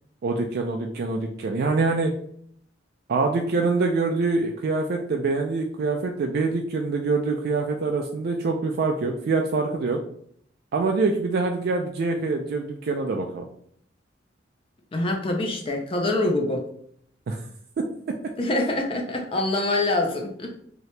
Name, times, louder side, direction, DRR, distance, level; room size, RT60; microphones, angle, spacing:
voice 1, 0.2-2.1 3.1-10.0 10.7-13.5 17.3-17.4, right 3 dB, 60° right, 2 dB, 0.3 m, -25 dB
voice 2, 14.9-16.6 18.4-20.6, left 2 dB, 30° left, 2 dB, 0.4 m, -25 dB
2.9 x 2.7 x 3.2 m, 0.65 s
head